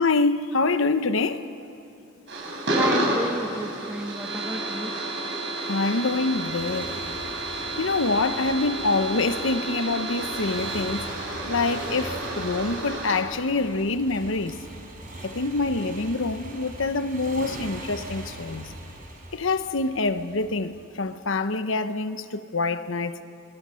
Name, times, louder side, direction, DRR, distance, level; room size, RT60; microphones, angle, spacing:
voice 1, 0.0-1.4 5.7-7.0 7.8-11.1 11.5-14.6 15.2-18.7 19.3-23.2, left 3 dB, 75° left, 0.9 m, -26 dB
sound 1, 2.3-13.2, right 1 dB, 60° right, 6.8 m, -30 dB
voice 2, 2.7-4.9, equal, 5° right, 1.3 m, -31 dB
Motorcycle, 6.1-21.3, right 1 dB, 40° right, 4.4 m, -42 dB
27.0 x 23.0 x 6.4 m
head